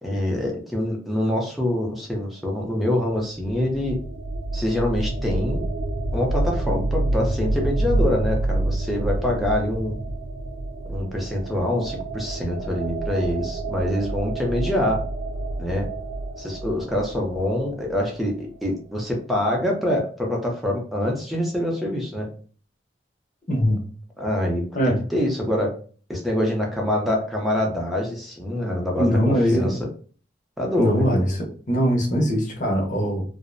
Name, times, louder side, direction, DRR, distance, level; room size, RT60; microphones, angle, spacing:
voice 1, 0.0-4.0 4.5-5.6 6.1-10.0 10.9-15.0 15.6-15.9 16.4-22.3 24.2-24.7 25.1-25.7 26.1-29.8 30.6-31.2, left 1 dB, ahead, 0.6 m, -25 dB
sound 1, 3.4-18.0, right 2 dB, 70° right, 0.3 m, -28 dB
voice 2, 23.5-23.8 24.7-25.0 29.0-29.8 30.8-33.2, equal, 45° left, 0.7 m, -21 dB
2.5 x 2.0 x 2.5 m
head